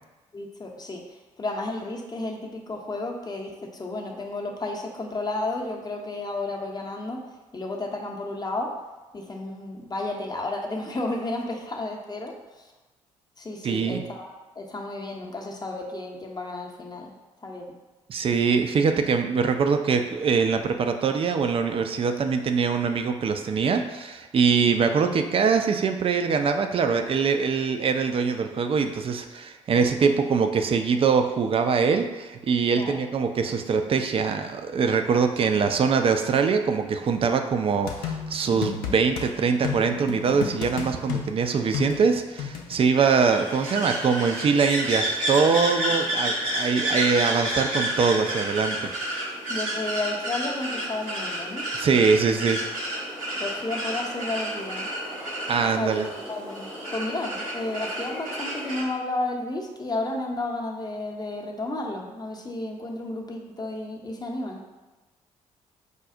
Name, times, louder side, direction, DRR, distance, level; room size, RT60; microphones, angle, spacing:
voice 1, 0.3-1.0 1.4-7.3 7.5-8.7 9.1-12.4 13.4-17.1 17.4-17.8 32.8-33.0 49.5-51.6 53.4-54.9 55.7-64.6, left 2 dB, 25° left, 0 dB, 0.6 m, -32 dB
voice 2, 13.6-14.0 18.1-48.9 51.7-52.6 55.5-56.1, right 5 dB, 35° right, 6 dB, 0.4 m, -23 dB
sound 1, 37.9-39.3 39.6-42.8, left 8 dB, 65° left, 0.5 m, -32 dB
sound 2, 42.9-58.8, right 1 dB, 90° right, 1.0 m, -30 dB
4.9 x 2.0 x 2.5 m, 1.2 s
figure-of-eight pair, 45°, 17 cm